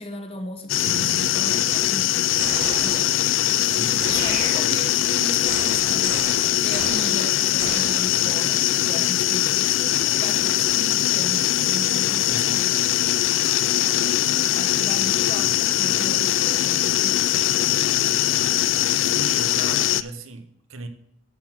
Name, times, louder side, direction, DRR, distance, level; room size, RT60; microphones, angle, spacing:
voice 1, 0.0-3.1 3.8-6.1 6.6-13.0 14.5-17.2, left 1 dB, 30° left, 6 dB, 1.1 m, -36 dB
sound 1, 0.7-20.0, left 13 dB, 65° left, 0.4 m, -21 dB
sound 2, 0.8-3.5, right 5 dB, 75° right, 0.4 m, -41 dB
sound 3, 2.4-3.4 4.0-5.0 5.5-8.3, right 3 dB, 50° right, 2.5 m, -34 dB
voice 2, 3.6-4.0 12.2-12.5 15.3-15.5 19.0-20.9, right 3 dB, 90° right, 9 dB, 1.0 m, -38 dB
12.0 x 4.6 x 5.8 m, 0.76 s
head